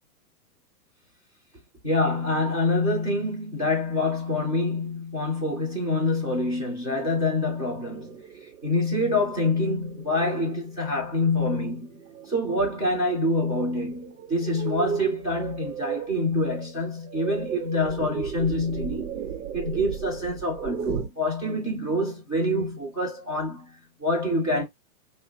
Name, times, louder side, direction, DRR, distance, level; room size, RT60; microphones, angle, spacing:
voice 1, 1.8-8.2 8.6-11.9 12.3-19.2 19.5-24.6, left 2 dB, 5° right, 0.4 m, -26 dB
sound 1, 7.9-21.1, right 7 dB, 80° right, 0.9 m, -36 dB
3.4 x 2.2 x 2.7 m
hypercardioid pair, 155°, 45 cm